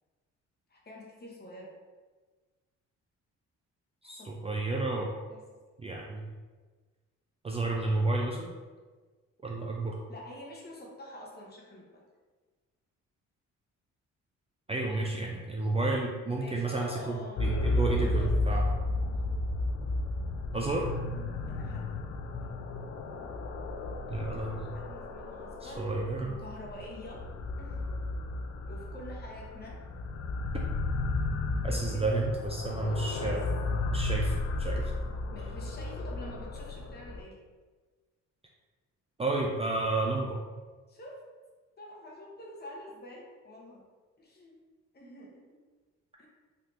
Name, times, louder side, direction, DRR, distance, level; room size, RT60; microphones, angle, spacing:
voice 1, 0.7-1.7 4.0-4.3 5.3-5.5 10.1-12.0 16.3-18.7 19.1-19.3 21.5-22.0 22.4-22.5 24.6-25.9 26.2-27.2 27.6-27.8 28.7-29.8 31.6-32.2 33.2-33.4 35.3-37.3 40.9-41.2 41.8-43.8 44.2-44.6 44.9-45.6 46.2-46.3, left 1 dB, 35° left, -3 dB, 0.9 m, -47 dB
voice 2, 4.0-5.1 5.8-6.2 7.4-8.5 9.4-10.0 14.7-18.7 20.5-20.9 24.1-24.7 25.6-26.3 31.6-33.4 33.9-34.9 39.2-40.4, right 2 dB, 20° right, -1 dB, 0.3 m, -31 dB
sound 1, 17.4-37.2, left 2 dB, 60° left, 0.4 m, -33 dB
3.4 x 2.8 x 2.5 m, 1.4 s
cardioid pair, 90°, 30 cm